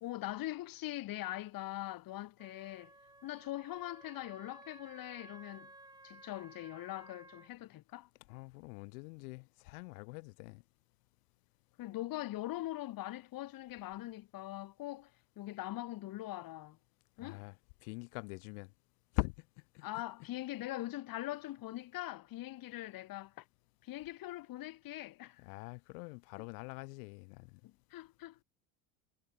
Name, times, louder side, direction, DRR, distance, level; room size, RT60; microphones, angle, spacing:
voice 1, 0.0-2.9 3.2-5.7 6.0-8.1 11.8-15.1 15.4-16.8 17.2-17.4 19.8-23.4 23.8-25.4 27.6-28.4, left 16 dB, 45° left, 2.6 m, -42 dB
Wind instrument woodwind instrument, 2.4-7.5, right 2 dB, 10° right, 7.3 m, -57 dB
voice 2, 8.3-10.6 17.2-18.7 19.1-19.5 19.7-20.0 25.4-27.6, left 30 dB, 75° left, 2.2 m, -43 dB
supercardioid pair, 125°, 47 cm